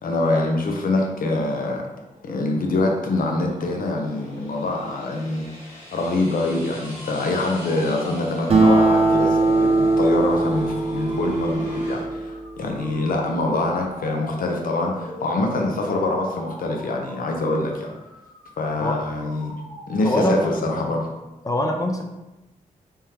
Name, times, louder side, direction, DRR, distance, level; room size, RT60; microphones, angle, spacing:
voice 1, 0.0-1.8 2.2-17.9 18.6-19.5 19.9-21.1, left 2 dB, 75° left, 1 dB, 0.7 m, -25 dB
sound 1, 2.0-12.1, equal, 55° left, 1.5 m, -41 dB
sound 2, 6.4-21.1, equal, 5° left, 0.9 m, -41 dB
Acoustic guitar, 8.5-13.3, right 2 dB, 40° right, 0.6 m, -21 dB
voice 2, 20.0-20.5 20.8-20.9 21.4-22.0, left 1 dB, 25° left, 3 dB, 0.4 m, -23 dB
3.6 x 3.3 x 2.9 m, 1.0 s
wide cardioid pair, 140°, 15 cm